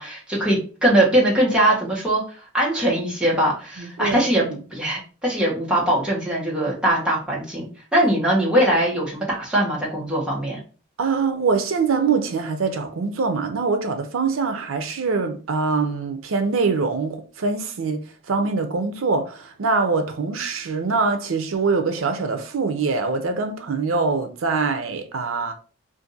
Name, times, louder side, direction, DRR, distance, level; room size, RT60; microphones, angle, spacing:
voice 1, 0.0-2.2 2.5-4.4 4.7-7.7 7.9-10.6, right 1 dB, 5° right, 1.0 m, -21 dB
voice 2, 3.8-4.6 11.0-18.0 18.3-25.5, right 4 dB, 85° right, 0.5 m, -24 dB
2.6 x 2.5 x 3.9 m
head